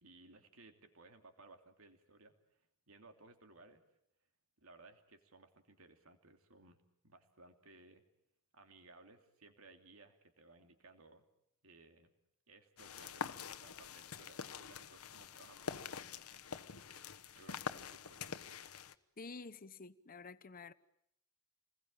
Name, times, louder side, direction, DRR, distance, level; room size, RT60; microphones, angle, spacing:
voice 1, 0.0-2.6 2.9-3.8 4.6-8.0 8.5-11.2 11.6-12.1 12.5-18.6, right 3 dB, 70° right, 2.9 m, -61 dB
sound 1, 12.8-18.9, left 6 dB, 80° left, 1.1 m, -46 dB
voice 2, 19.2-20.7, left 4 dB, 40° left, 1.0 m, -50 dB
30.0 x 21.0 x 9.0 m
head